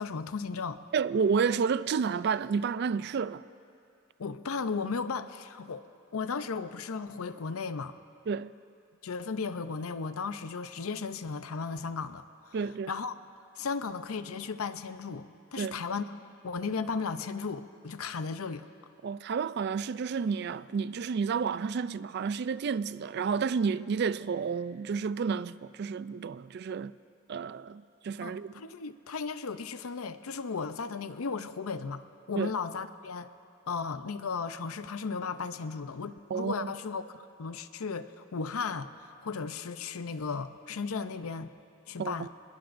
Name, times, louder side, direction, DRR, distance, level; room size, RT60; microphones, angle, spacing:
voice 1, 0.0-0.8 4.2-5.9 6.1-7.9 9.0-12.6 12.9-13.1 13.6-15.3 15.5-16.0 16.4-18.7 28.2-32.0 32.3-33.3 33.7-41.5 41.9-42.3, left 5 dB, 85° left, 0.6 m, -35 dB
voice 2, 0.9-3.4 8.3-8.5 12.5-12.9 15.6-15.8 19.0-26.9 27.3-28.5 32.3-32.5 36.3-36.7 42.0-42.3, right 6 dB, 50° right, 0.3 m, -30 dB
25.5 x 21.0 x 2.6 m
head